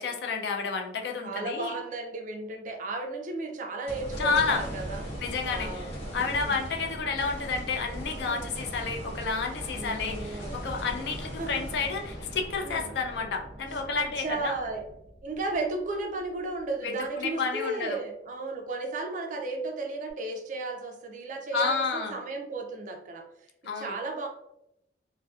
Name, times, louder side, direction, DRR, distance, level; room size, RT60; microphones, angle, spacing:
voice 1, 0.0-1.7 4.2-4.6 5.2-14.6 16.8-18.0 21.5-22.1 23.6-23.9, left 4 dB, 65° left, 3 dB, 0.4 m, -30 dB
voice 2, 1.2-5.1 5.5-5.9 6.3-6.6 8.2-8.5 9.7-10.5 11.4-11.5 12.6-12.9 14.0-14.9 15.2-23.2 23.8-24.3, right 2 dB, 45° right, 3 dB, 0.4 m, -34 dB
sound 1, 3.9-16.2 16.7-16.8 20.1-20.2, equal, 35° left, 1.0 m, -39 dB
2.5 x 2.1 x 2.3 m, 0.81 s
head